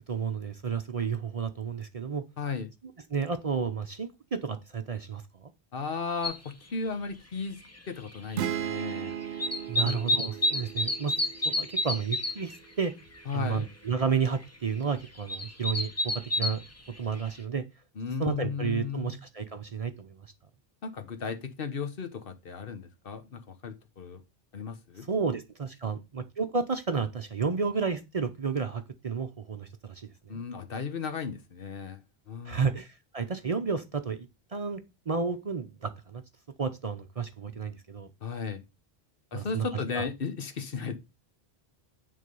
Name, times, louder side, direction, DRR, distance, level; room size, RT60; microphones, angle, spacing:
voice 1, 0.1-2.2 3.1-5.2 9.7-11.1 11.4-12.9 13.3-16.6 17.0-17.6 18.2-20.2 25.1-30.4 32.5-36.2 36.6-38.1 39.3-39.7 39.9-40.0, right 5 dB, 40° right, 0.6 m, -31 dB
voice 2, 2.4-2.7 5.7-7.6 7.9-9.1 9.8-10.0 13.3-13.7 18.0-19.2 20.8-24.2 24.5-25.1 30.3-32.0 32.3-32.7 38.2-38.6 39.3-41.0, left 5 dB, 65° left, 1.2 m, -35 dB
sound 1, 6.2-6.3 7.8-7.9 8.1-9.0 9.2-12.6 12.9-13.0 13.2-13.6 14.0-14.1 15.0-16.7 17.3-17.4, left 1 dB, 15° left, 0.8 m, -29 dB
sound 2, 8.4-12.1, right 9 dB, 80° right, 0.9 m, -36 dB
9.6 x 3.8 x 5.3 m
omnidirectional pair, 1.0 m